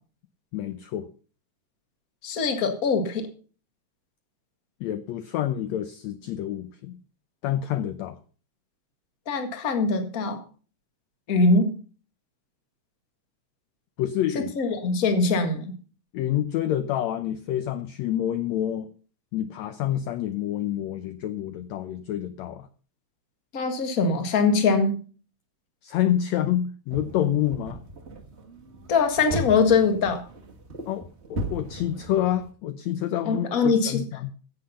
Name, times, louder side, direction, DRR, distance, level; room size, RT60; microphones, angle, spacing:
voice 1, 0.5-1.1 4.8-7.0 7.4-8.2 14.0-14.5 16.1-18.9 19.3-22.7 25.8-27.8 30.9-34.3, left 11 dB, 80° left, 11 dB, 1.6 m, -28 dB
voice 2, 2.2-3.3 9.3-10.4 11.3-11.7 14.3-15.7 23.5-25.0 28.9-30.2 33.2-34.0, left 4 dB, 35° left, 6 dB, 1.5 m, -22 dB
sound 1, 26.9-32.5, equal, 35° right, 1.0 m, -37 dB
15.5 x 7.5 x 5.7 m, 0.39 s
omnidirectional pair, 3.9 m